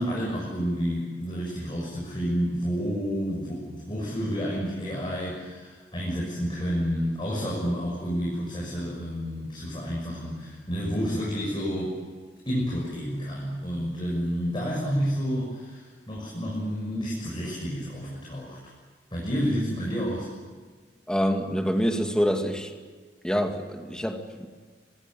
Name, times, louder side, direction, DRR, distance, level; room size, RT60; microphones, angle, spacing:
voice 1, 0.0-12.0 12.4-18.6 19.1-20.3, equal, 25° left, -4 dB, 6.6 m, -30 dB
voice 2, 21.1-22.7 23.2-24.5, equal, 5° left, 4 dB, 2.3 m, -26 dB
25.5 x 20.5 x 9.3 m, 1.5 s
head